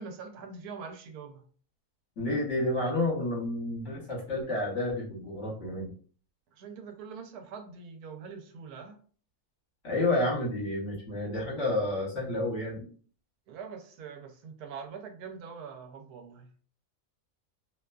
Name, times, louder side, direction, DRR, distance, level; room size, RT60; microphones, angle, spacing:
voice 1, 0.0-1.4 6.5-9.0 13.5-16.5, right 5 dB, 90° right, 5 dB, 1.1 m, -43 dB
voice 2, 2.2-5.9 9.8-12.8, left 2 dB, 55° left, -3 dB, 1.2 m, -30 dB
2.8 x 2.3 x 2.2 m, 0.43 s
omnidirectional pair, 1.6 m